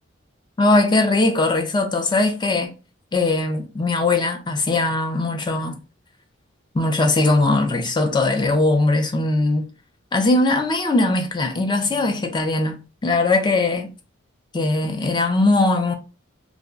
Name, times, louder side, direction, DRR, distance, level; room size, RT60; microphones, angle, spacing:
voice 1, 0.6-2.7 3.1-5.8 6.7-9.7 10.1-13.9 14.5-15.9, left 2 dB, 20° left, 0.4 m, -20 dB
2.5 x 2.0 x 3.6 m
head